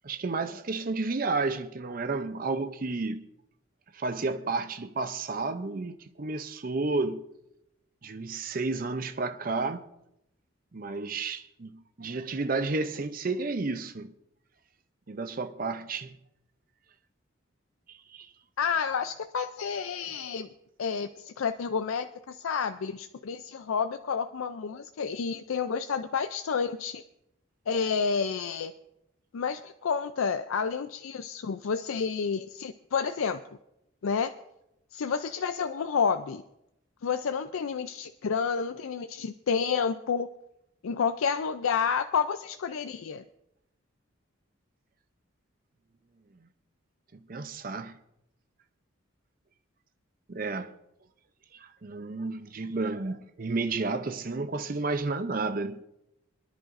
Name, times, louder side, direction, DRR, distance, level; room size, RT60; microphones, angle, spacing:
voice 1, 0.0-3.2 3.9-7.2 8.0-9.8 10.7-14.1 15.1-16.2 17.9-18.3 47.1-47.9 50.3-50.7 51.5-55.8, right 3 dB, 45° right, 0.6 m, -32 dB
voice 2, 18.6-20.5 20.8-27.0 27.7-28.7 29.3-33.4 34.0-34.3 34.9-36.4 37.0-40.3 40.8-43.2, left 6 dB, 90° left, 0.5 m, -30 dB
27.0 x 10.5 x 2.6 m
head